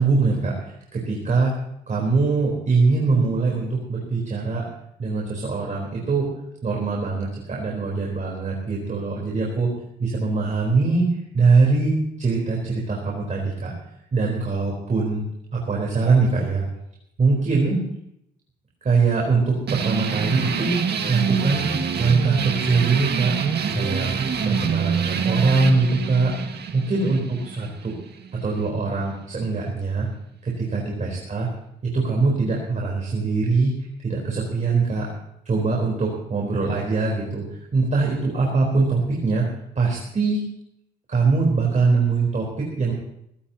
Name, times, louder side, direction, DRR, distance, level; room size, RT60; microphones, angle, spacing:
voice 1, 0.0-1.5 1.9-4.7 5.0-6.3 6.6-9.7 10.0-11.1 11.3-13.7 14.1-15.2 15.5-16.6 17.2-17.8 18.8-21.7 22.0-23.4 23.7-24.1 24.4-26.3 26.7-28.0 28.4-30.1 30.4-31.5 31.8-33.7 34.0-35.1 35.5-37.4 37.7-39.5 39.8-40.4 41.1-42.9, right 4 dB, 40° right, -2 dB, 4.2 m, -22 dB
sound 1, 19.7-28.7, right 6 dB, 55° right, 1.9 m, -26 dB
23.0 x 16.0 x 2.9 m, 0.77 s
cardioid pair, 90°, 20 cm